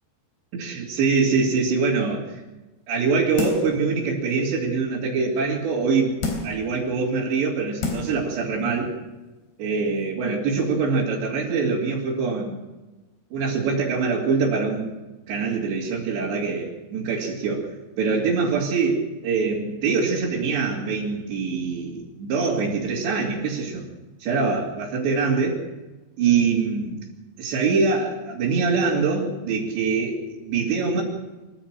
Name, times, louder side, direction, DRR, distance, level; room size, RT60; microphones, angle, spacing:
voice 1, 0.5-2.4 2.9-6.2 6.4-8.9 9.6-12.6 13.3-14.9 15.3-17.7 18.0-23.9 24.2-25.6 26.2-27.0 27.4-31.0, right 4 dB, 90° right, -5 dB, 5.1 m, -24 dB
sound 1, 3.4-3.8 4.3-4.4 6.2-6.7 7.4-7.5 7.8-8.2 8.6-8.7, left 3 dB, 75° left, 5.7 m, -28 dB
25.0 x 15.0 x 7.6 m, 1.1 s
omnidirectional pair, 4.8 m